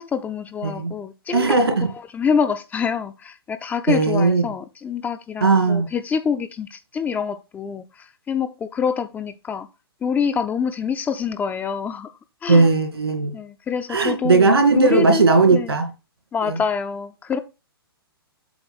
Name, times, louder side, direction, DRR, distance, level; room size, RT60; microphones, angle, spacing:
voice 1, 0.0-1.6 2.1-9.7 10.0-12.1 12.4-12.7 13.3-14.5 14.8-15.7 16.3-17.4, left 6 dB, 15° left, 0.5 m, -26 dB
voice 2, 1.3-1.9 3.9-4.4 5.4-5.9 12.5-13.3 13.9-15.9 16.5-16.6, right 3 dB, 80° right, 2.6 m, -17 dB
8.0 x 3.7 x 5.9 m
figure-of-eight pair, 120°, 13 cm